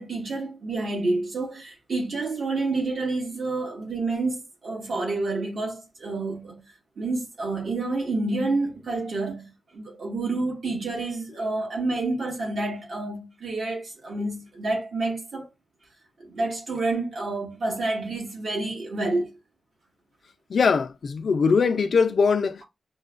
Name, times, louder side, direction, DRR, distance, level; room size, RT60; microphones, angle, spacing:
voice 1, 0.0-6.6 7.0-15.5 16.2-19.3, right 2 dB, 70° right, 1.7 m, -29 dB
voice 2, 20.5-22.6, left 5 dB, 70° left, 0.5 m, -21 dB
6.3 x 2.3 x 2.5 m
wide cardioid pair, 170°, 0 cm